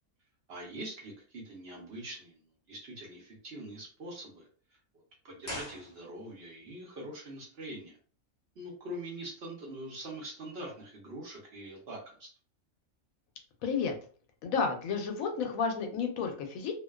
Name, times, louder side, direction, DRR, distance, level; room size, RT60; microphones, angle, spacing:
voice 1, 0.5-2.4 2.7-4.5 5.2-8.0 8.6-12.3, right 1 dB, 55° right, -2 dB, 0.8 m, -43 dB
sound 1, 5.4-6.5 6.8-6.9, equal, 15° left, 0.9 m, -43 dB
voice 2, 13.6-14.0 14.4-16.7, left 5 dB, 80° left, 4 dB, 1.0 m, -31 dB
2.5 x 2.2 x 2.2 m, 0.42 s
omnidirectional pair, 1.5 m